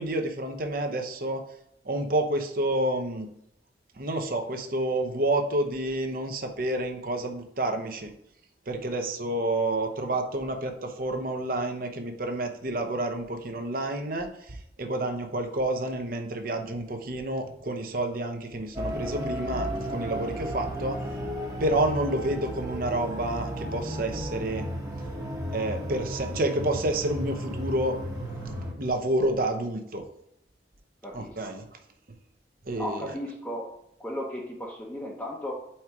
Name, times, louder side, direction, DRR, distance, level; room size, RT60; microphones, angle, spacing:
voice 1, 0.0-1.4 1.8-3.3 4.0-8.1 8.7-21.0 21.6-24.7 25.5-28.0 28.7-30.0 31.1-31.6 32.7-33.1, right 1 dB, 50° right, 5 dB, 0.8 m, -29 dB
sound 1, 18.8-28.7, equal, 20° right, 1.0 m, -34 dB
voice 2, 31.0-31.5 32.8-33.7 34.0-35.5, equal, 10° left, -4 dB, 0.8 m, -35 dB
4.7 x 4.4 x 4.7 m, 0.74 s
head